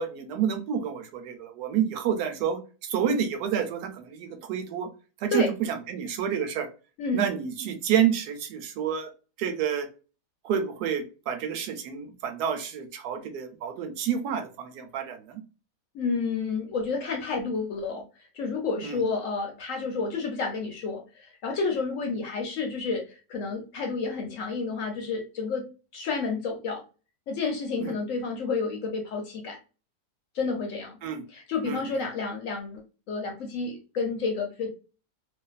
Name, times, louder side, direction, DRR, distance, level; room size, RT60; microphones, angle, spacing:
voice 1, 0.0-4.9 5.2-6.7 7.1-9.1 9.4-9.9 10.4-15.4 18.8-19.0 27.8-27.9 31.0-31.2 31.6-32.0, right 8 dB, 80° right, 7 dB, 1.1 m, -29 dB
voice 2, 15.9-18.0 18.3-25.7 25.9-26.8 27.3-29.6 30.3-30.9 31.3-32.8 33.1-34.7, left 4 dB, 65° left, 2 dB, 0.8 m, -30 dB
2.5 x 2.4 x 2.2 m, 0.34 s
omnidirectional pair, 1.7 m